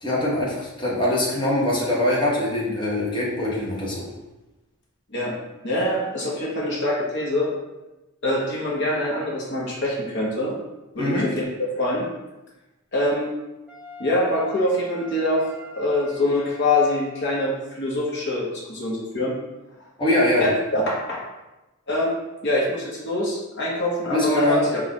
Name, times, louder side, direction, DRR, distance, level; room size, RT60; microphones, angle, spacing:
voice 1, 0.0-4.1 11.0-11.3 20.0-20.5 24.1-24.6, left 1 dB, 25° left, -5 dB, 0.9 m, -23 dB
voice 2, 5.6-7.5 8.2-10.5 10.9-12.1 12.9-13.4 14.0-15.4 15.7-19.4 20.4-21.2 21.9-22.1 22.4-24.8, left 1 dB, 60° left, -3 dB, 0.9 m, -24 dB
Wind instrument woodwind instrument, 13.7-17.4, left 2 dB, 5° right, 0.5 m, -42 dB
4.1 x 2.4 x 4.7 m, 1.0 s
head